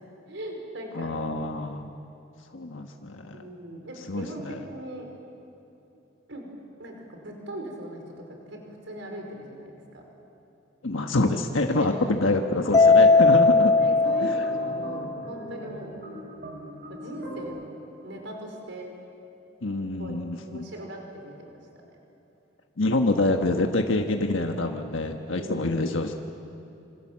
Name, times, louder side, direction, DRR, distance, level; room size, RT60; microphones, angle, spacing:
voice 1, 0.3-1.1 3.3-5.1 6.3-6.5 6.8-8.0 8.5-10.0 11.7-12.1 12.8-16.0 16.9-18.9 20.0-20.2 20.4-21.5 25.3-25.7, right 1 dB, 70° right, 2 dB, 4.9 m, -39 dB
voice 2, 0.9-1.9 2.5-3.5 4.1-4.6 10.8-13.7 19.6-20.7 22.8-26.1, left 2 dB, 85° left, 4 dB, 1.4 m, -26 dB
sound 1, 12.2-17.4, right 1 dB, 45° right, 7.1 m, -41 dB
Mallet percussion, 12.7-15.2, left 3 dB, 20° left, 0.6 m, -18 dB
26.5 x 26.5 x 7.5 m, 2.9 s
head